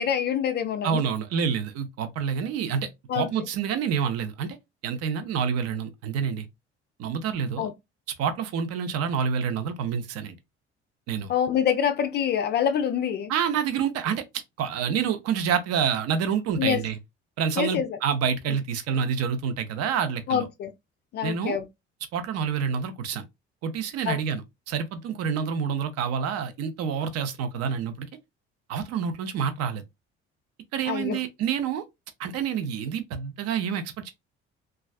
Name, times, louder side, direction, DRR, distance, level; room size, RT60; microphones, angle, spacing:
voice 1, 0.0-1.0 3.1-3.3 7.6-7.7 11.3-13.3 16.6-16.8 17.6-18.0 20.3-20.7 21.1-21.6 24.1-24.2 30.9-31.2, left 8 dB, 30° left, 0.4 m, -26 dB
voice 2, 0.8-4.6 4.8-6.5 7.0-7.7 8.2-10.4 11.1-11.3 13.3-14.2 14.6-17.0 17.4-20.5 21.2-21.6 22.1-23.2 23.6-28.1 28.7-29.8 30.7-31.8 32.2-34.1, right 7 dB, 45° right, 0.6 m, -28 dB
3.1 x 2.4 x 2.4 m
figure-of-eight pair, 55°, 34 cm